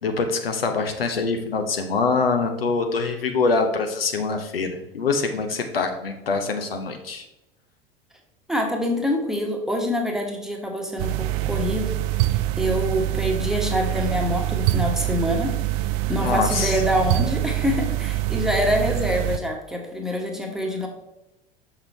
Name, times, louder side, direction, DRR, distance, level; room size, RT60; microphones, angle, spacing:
voice 1, 0.0-7.2 16.1-16.8, left 4 dB, 75° left, 5 dB, 0.9 m, -24 dB
voice 2, 8.5-12.0 12.3-15.6 16.1-20.9, left 1 dB, ahead, 1 dB, 1.2 m, -25 dB
sound 1, 11.0-19.4, right 15 dB, 40° right, 0.4 m, -25 dB
6.4 x 5.9 x 3.4 m, 0.92 s
figure-of-eight pair, 80°, 30 cm